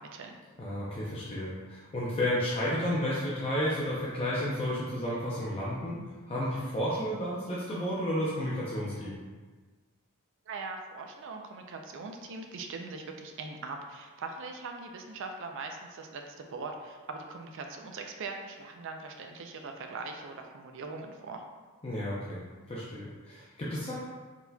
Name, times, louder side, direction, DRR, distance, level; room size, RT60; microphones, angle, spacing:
voice 1, 0.0-0.4 10.5-21.4, right 3 dB, 60° right, 4 dB, 0.4 m, -41 dB
voice 2, 0.6-6.0 6.3-9.2 21.8-23.9, left 1 dB, 25° left, -7 dB, 0.6 m, -32 dB
4.4 x 4.0 x 2.2 m, 1.4 s
head